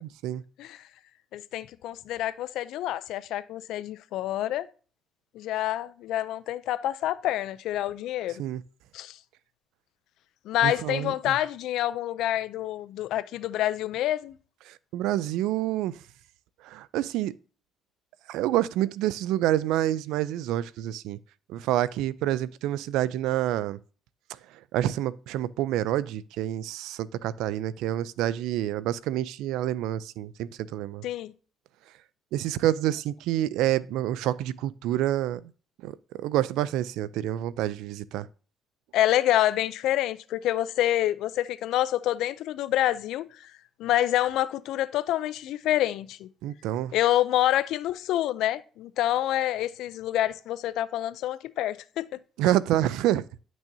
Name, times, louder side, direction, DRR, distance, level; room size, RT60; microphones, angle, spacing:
voice 1, 0.0-0.4 8.4-8.6 10.6-11.3 14.7-16.0 16.6-17.3 18.3-21.2 21.5-23.8 24.7-31.0 32.3-35.4 35.8-38.3 46.4-46.9 52.4-53.2, right 13 dB, 90° right, 0.3 m, -28 dB
voice 2, 1.3-4.7 5.3-8.4 8.9-9.2 10.5-14.4 31.0-31.3 38.9-43.5 43.8-46.3 46.9-52.1, left 13 dB, 80° left, 0.4 m, -27 dB
10.5 x 6.1 x 2.7 m
cardioid pair, 95°, 0 cm